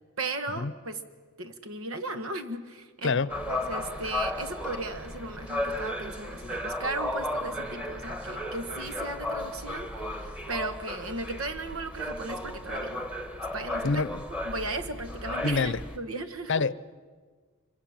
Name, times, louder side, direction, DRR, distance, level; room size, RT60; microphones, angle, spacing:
voice 1, 0.2-1.0 1.4-13.1 13.5-16.6, right 2 dB, 80° right, 1.7 m, -36 dB
sound 1, 3.3-16.0, left 1 dB, 5° right, 1.7 m, -35 dB
voice 2, 13.8-14.2 15.4-15.8 16.5-16.9, left 4 dB, 60° left, 0.7 m, -26 dB
26.0 x 24.0 x 7.4 m
head